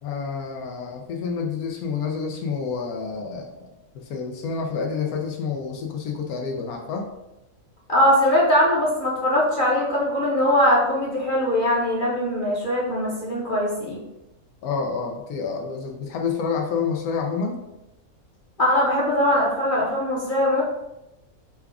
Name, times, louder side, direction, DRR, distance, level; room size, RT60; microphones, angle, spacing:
voice 1, 0.0-7.1 14.6-17.6, left 5 dB, 85° left, 1 dB, 1.1 m, -28 dB
voice 2, 7.9-14.0 18.6-20.6, left 1 dB, 40° left, -6 dB, 0.9 m, -21 dB
5.8 x 2.4 x 3.4 m, 0.92 s
omnidirectional pair, 1.5 m